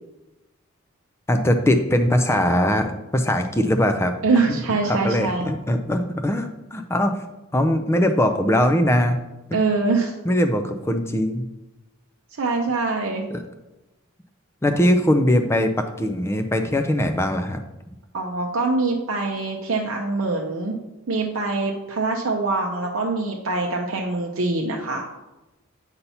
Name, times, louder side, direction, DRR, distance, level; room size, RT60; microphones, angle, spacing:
voice 1, 1.3-4.1 4.5-4.6 4.9-7.2 7.5-9.2 10.3-11.4 13.3-13.4 14.6-17.6, left 1 dB, 10° left, 7 dB, 0.4 m, -21 dB
voice 2, 4.2-5.5 9.5-10.1 12.4-13.2 18.1-20.7 21.1-25.1, right 3 dB, 65° right, 0 dB, 0.6 m, -24 dB
8.0 x 2.8 x 5.5 m, 1.0 s
head